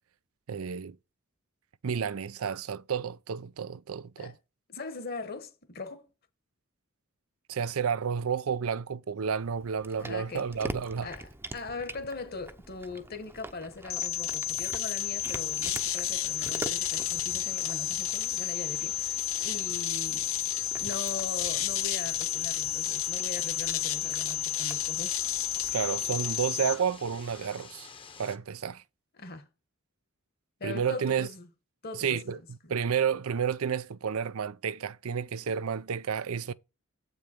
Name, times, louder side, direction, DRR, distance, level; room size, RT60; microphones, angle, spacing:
voice 1, 0.5-1.0 1.8-4.4 7.5-11.1 25.7-27.9 28.2-28.8 30.6-31.3 31.9-36.5, right 7 dB, 90° right, 0.5 m, -31 dB
voice 2, 4.7-6.1 10.0-10.5 11.0-20.3 20.8-25.2 29.2-29.5 30.6-31.5 31.8-32.4 32.6-32.7, left 3 dB, 45° left, 1.4 m, -40 dB
Cat, 9.4-26.5, right 1 dB, 10° right, 0.7 m, -46 dB
sound 1, 13.9-26.8, left 11 dB, 75° left, 1.1 m, -31 dB
sound 2, 15.0-28.4, left 5 dB, 25° left, 0.9 m, -49 dB
7.9 x 5.3 x 4.4 m
head